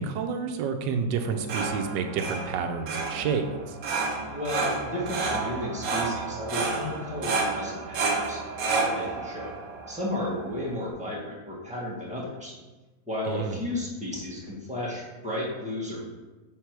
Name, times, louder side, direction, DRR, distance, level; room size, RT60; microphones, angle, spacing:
voice 1, 0.0-3.8 13.3-13.6, right 5 dB, 80° right, 7 dB, 1.3 m, -29 dB
sound 1, 1.1-10.9, right 3 dB, 60° right, 1.1 m, -31 dB
voice 2, 4.3-8.4 8.8-9.5 9.9-12.5 13.1-16.0, left 1 dB, 5° right, -6 dB, 1.2 m, -33 dB
6.0 x 3.6 x 4.6 m, 1.2 s
omnidirectional pair, 1.9 m